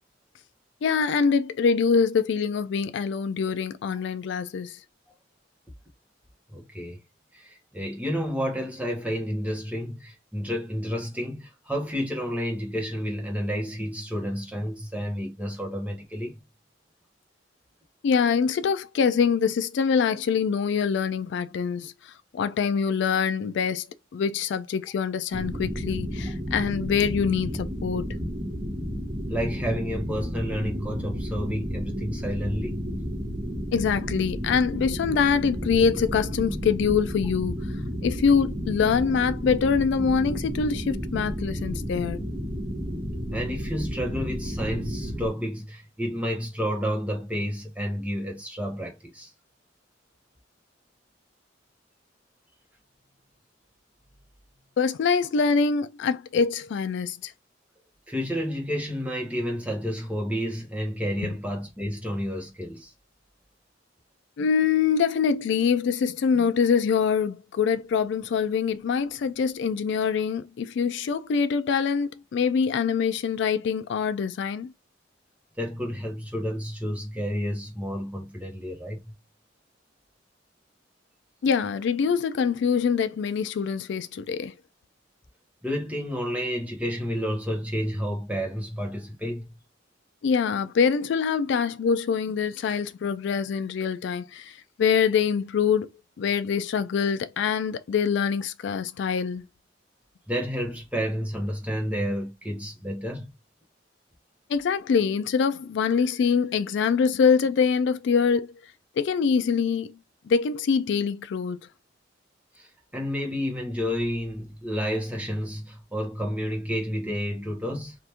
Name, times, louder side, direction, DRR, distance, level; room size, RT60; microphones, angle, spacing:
voice 1, 0.8-4.8 18.0-23.9 24.1-28.1 33.7-37.7 38.0-42.3 54.8-57.3 64.4-74.7 81.4-84.5 90.2-95.9 96.2-99.4 104.5-108.5 109.0-110.0 110.3-111.6, left 6 dB, 65° left, 0.3 m, -24 dB
voice 2, 6.5-7.0 7.3-16.4 29.3-33.0 43.3-49.3 58.1-62.9 75.6-79.1 85.6-89.5 100.3-103.3 112.5-117.9, equal, 10° right, 1.0 m, -30 dB
sound 1, 25.3-45.3, equal, 30° right, 0.9 m, -32 dB
2.9 x 2.5 x 3.3 m
head